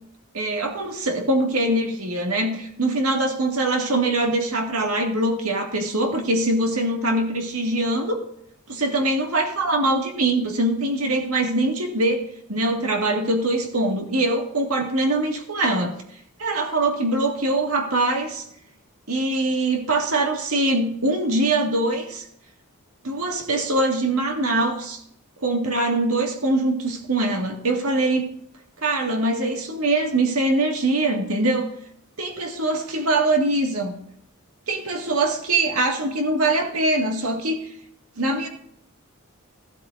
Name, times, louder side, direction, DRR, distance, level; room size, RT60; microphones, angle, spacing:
voice 1, 0.3-8.2 8.7-12.2 12.5-15.9 16.4-18.4 19.1-22.3 23.0-25.0 25.4-28.2 28.8-31.7 32.2-33.9 34.7-37.6 38.2-38.5, right 2 dB, 80° right, 2 dB, 1.9 m, -23 dB
14.5 x 12.0 x 2.6 m, 0.71 s
head